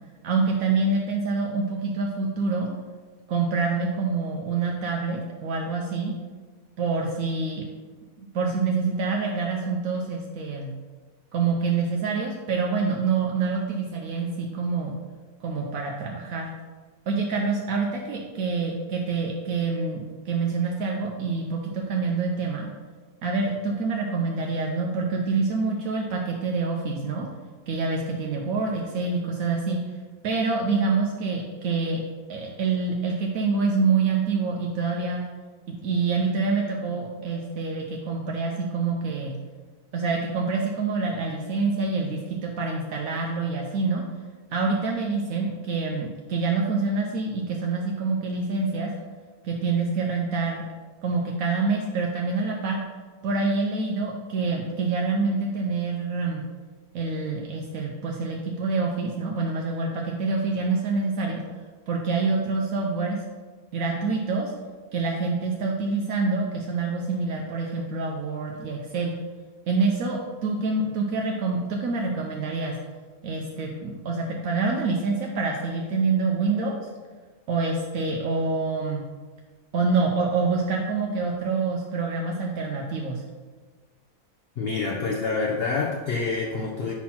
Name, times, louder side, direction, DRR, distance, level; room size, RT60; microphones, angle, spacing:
voice 1, 0.2-2.7 3.3-6.1 6.8-7.6 8.2-10.7 11.3-14.9 15.4-16.5 17.1-22.7 23.2-27.3 27.7-29.8 30.2-32.0 32.3-35.2 35.7-39.4 39.9-44.0 44.5-48.9 49.4-50.6 51.0-52.8 53.2-56.4 56.9-61.4 61.9-63.2 63.7-64.5 64.9-69.1 69.7-72.7 73.2-76.8 77.5-79.0 79.7-83.2, right 4 dB, 75° right, 0 dB, 1.1 m, -26 dB
voice 2, 84.6-86.9, left 4 dB, 55° left, -1 dB, 0.8 m, -27 dB
4.7 x 4.2 x 5.7 m, 1.4 s
omnidirectional pair, 1.5 m